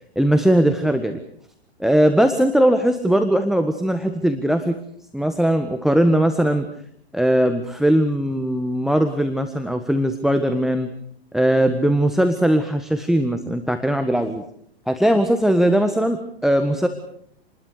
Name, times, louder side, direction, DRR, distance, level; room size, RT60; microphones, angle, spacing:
voice 1, 0.1-1.2 1.8-4.8 5.1-6.7 7.1-10.9 11.3-14.4 14.9-16.9, right 1 dB, ahead, 8 dB, 1.5 m, -19 dB
28.5 x 20.5 x 6.7 m, 0.68 s
hypercardioid pair, 110°, 32 cm